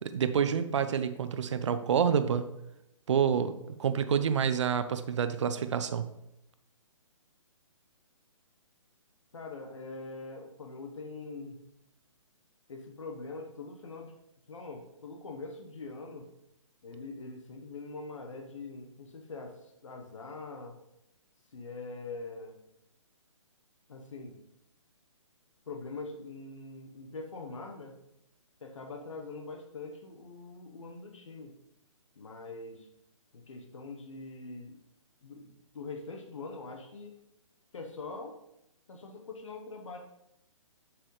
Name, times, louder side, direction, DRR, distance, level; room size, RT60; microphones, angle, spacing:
voice 1, 0.0-2.5 3.1-3.5 3.8-6.1, right 7 dB, 65° right, 10 dB, 0.6 m, -28 dB
voice 2, 9.3-11.6 12.7-14.1 14.5-16.3 16.8-20.8 21.5-22.5 23.9-24.4 25.7-27.9 28.6-31.5 32.2-32.9 33.3-34.8 35.2-37.1 37.7-38.4 38.9-40.0, left 3 dB, 70° left, 2 dB, 1.0 m, -43 dB
7.9 x 6.1 x 3.2 m, 0.84 s
hypercardioid pair, 140°, 17 cm